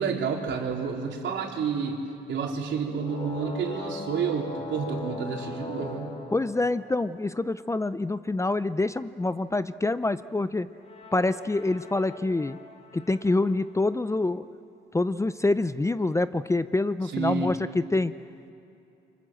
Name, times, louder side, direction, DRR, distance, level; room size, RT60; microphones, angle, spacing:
voice 1, 0.0-2.0 2.3-6.1 17.0-17.6, right 6 dB, 70° right, 0 dB, 3.9 m, -30 dB
sound 1, 2.8-7.4 10.7-13.6, left 3 dB, 35° left, 3.4 m, -41 dB
voice 2, 6.3-10.7 11.1-12.6 12.9-14.5 14.9-18.1, left 2 dB, 15° left, 14 dB, 0.6 m, -26 dB
28.5 x 24.5 x 7.6 m, 2.8 s
cardioid pair, 90°, 20 cm